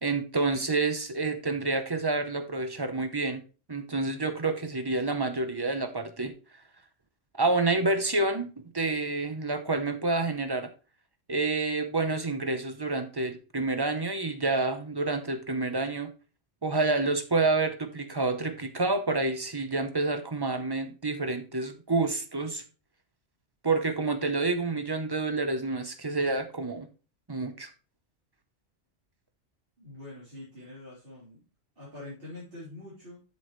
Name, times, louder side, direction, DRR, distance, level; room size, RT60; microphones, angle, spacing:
voice 1, 0.0-3.4 3.7-6.3 7.4-8.5 8.7-10.7 11.3-16.1 16.6-22.6 23.6-26.9 27.3-27.7, right 3 dB, 25° right, 8 dB, 0.7 m, -28 dB
voice 2, 29.8-31.4 31.8-33.2, left 2 dB, 50° right, -8 dB, 3.7 m, -45 dB
7.9 x 7.1 x 3.1 m, 0.33 s
omnidirectional pair, 1.2 m